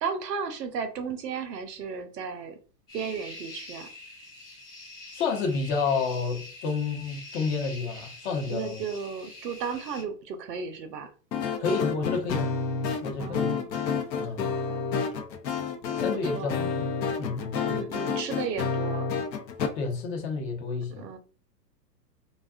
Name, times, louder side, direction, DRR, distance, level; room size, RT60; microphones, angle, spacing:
voice 1, 0.0-2.6 2.9-3.9 8.5-11.1 13.1-13.7 14.7-14.9 15.9-16.6 17.6-19.1 20.7-21.2, right 6 dB, 75° right, 0.7 m, -34 dB
sound 1, 2.9-10.0, left 2 dB, 10° left, 0.3 m, -45 dB
voice 2, 5.1-8.8 11.6-12.5 13.0-13.5 14.2-14.5 16.0-16.9 17.2-17.8 19.7-21.0, left 4 dB, 40° left, 0.8 m, -30 dB
sound 2, 11.3-19.7, left 5 dB, 80° left, 0.7 m, -30 dB
2.5 x 2.4 x 2.3 m
hypercardioid pair, 115°, 50 cm